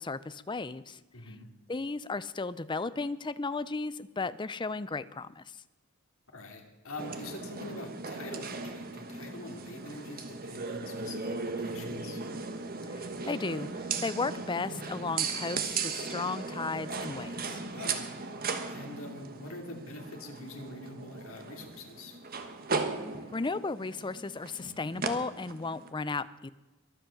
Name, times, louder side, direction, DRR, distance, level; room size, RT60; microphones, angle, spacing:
voice 1, 0.0-1.0 1.7-5.4 12.9-17.6 23.3-26.5, left 3 dB, 20° left, 16 dB, 0.5 m, -35 dB
voice 2, 1.1-1.5 6.3-12.2 17.7-18.1 18.7-22.2, left 2 dB, 65° left, 2 dB, 3.0 m, -44 dB
sound 1, 7.0-25.9, right 4 dB, 40° right, 1.3 m, -37 dB
23.0 x 8.0 x 7.1 m, 1.1 s
head